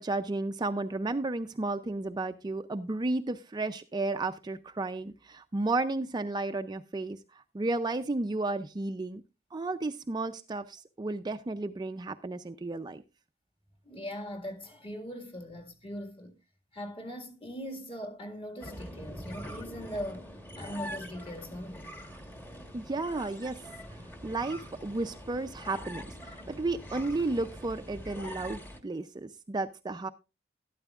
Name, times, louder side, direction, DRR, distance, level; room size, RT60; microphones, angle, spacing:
voice 1, 0.0-9.2 9.5-13.0 22.7-23.6 24.2-30.1, right 2 dB, 20° right, 0.4 m, -33 dB
voice 2, 13.8-16.4 16.7-20.3 20.6-21.9, equal, 30° left, 1.8 m, -40 dB
sound 1, 18.6-28.8, equal, 10° left, 1.2 m, -44 dB
12.5 x 12.0 x 2.4 m
head